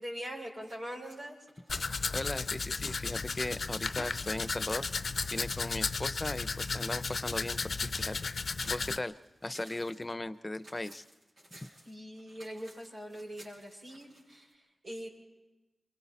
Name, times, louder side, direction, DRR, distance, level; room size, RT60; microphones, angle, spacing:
voice 1, 0.0-1.4 11.9-15.1, equal, 70° right, -3 dB, 5.2 m, -42 dB
sound 1, 0.6-14.5, equal, 90° right, 6.0 m, -56 dB
Domestic sounds home sounds, 1.7-9.0, left 4 dB, 75° left, 0.6 m, -34 dB
voice 2, 2.1-4.9 5.3-8.3 8.7-9.1 9.4-11.0, left 2 dB, 30° left, 13 dB, 0.7 m, -37 dB
28.5 x 23.5 x 4.2 m, 1.1 s
cardioid pair, 40°, 0 cm